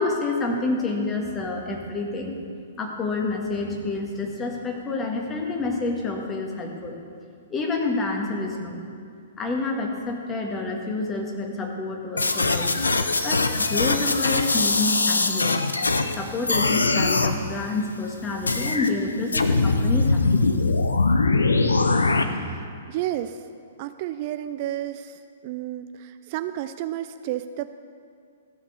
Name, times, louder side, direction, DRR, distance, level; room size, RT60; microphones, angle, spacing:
voice 1, 0.0-2.4 2.8-7.0 7.5-8.8 9.4-12.7 13.2-15.6 16.2-20.6, left 3 dB, 20° left, 1 dB, 1.7 m, -28 dB
sound 1, 12.2-16.1 16.5-17.3 18.5-18.9 19.3-22.2, left 3 dB, 80° left, 0.7 m, -22 dB
voice 2, 22.3-23.4 23.8-27.7, right 13 dB, 45° right, 10 dB, 0.4 m, -32 dB
14.5 x 6.0 x 6.9 m, 2.3 s
figure-of-eight pair, 115°, 0 cm